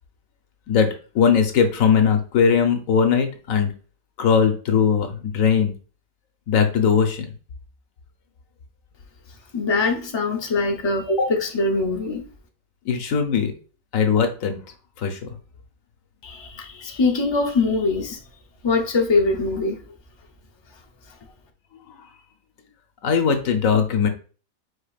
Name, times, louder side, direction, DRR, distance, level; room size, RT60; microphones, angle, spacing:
voice 1, 1.1-3.7 4.2-5.7 6.5-7.3 12.8-13.5 13.9-14.6 15.0-15.3 23.0-24.1, left 6 dB, 70° left, 1.2 m, -19 dB
voice 2, 9.5-12.2 16.2-18.2 18.6-19.8, left 3 dB, 30° left, 0.5 m, -22 dB
5.1 x 4.3 x 2.4 m
omnidirectional pair, 1.5 m